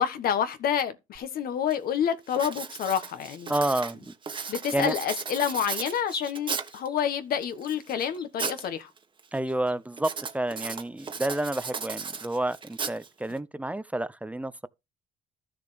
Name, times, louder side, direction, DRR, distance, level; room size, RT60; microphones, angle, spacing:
voice 1, 0.0-3.5 4.5-8.9, left 8 dB, 60° left, 1.4 m, -28 dB
Writing, 1.2-1.3 1.7-2.0 2.3-6.9 7.4-8.7 9.0-9.4 10.0-13.4, right 5 dB, 30° right, 1.4 m, -36 dB
sound 1, 3.5-3.7 4.4-4.5 5.0-5.3 5.6-6.4 6.7-7.0 7.4-7.5 8.0-8.4 8.8-8.9 9.4-9.8, left 4 dB, 25° left, 1.3 m, -42 dB
voice 2, 3.5-4.1 4.7-4.9 9.3-14.5, right 1 dB, 10° right, 0.5 m, -29 dB
13.0 x 6.7 x 3.4 m
cardioid pair, 110°, 17 cm